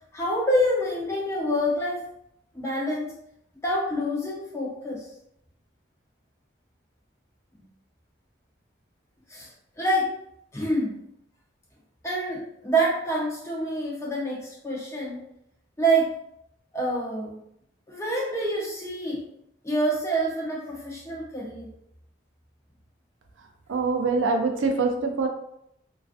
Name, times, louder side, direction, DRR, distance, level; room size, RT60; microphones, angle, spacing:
voice 1, 0.1-2.0 2.5-3.1 3.6-5.1 7.5-7.6 9.3-9.5 9.8-10.1 10.5-11.0 12.0-15.3 15.8-16.1 16.7-17.4 17.9-19.2 19.6-21.7, right 1 dB, 15° left, -3 dB, 0.5 m, -27 dB
voice 2, 23.7-25.3, right 4 dB, 80° right, 4 dB, 0.4 m, -24 dB
2.4 x 2.4 x 2.4 m, 0.76 s
head